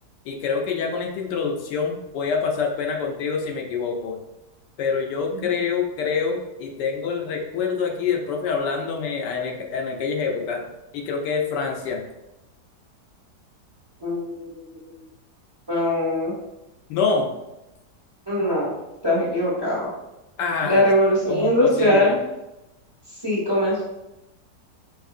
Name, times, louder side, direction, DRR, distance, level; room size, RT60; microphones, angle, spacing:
voice 1, 0.2-4.2 4.8-12.0 16.9-17.3 20.4-20.9 21.3-22.1, left 5 dB, 85° left, 2 dB, 1.2 m, -26 dB
voice 2, 14.0-14.5 15.7-16.3 18.3-18.7 19.0-19.9 20.6-22.2 23.2-23.8, left 1 dB, 15° right, -8 dB, 1.1 m, -21 dB
5.2 x 2.6 x 2.5 m, 0.96 s
omnidirectional pair, 1.8 m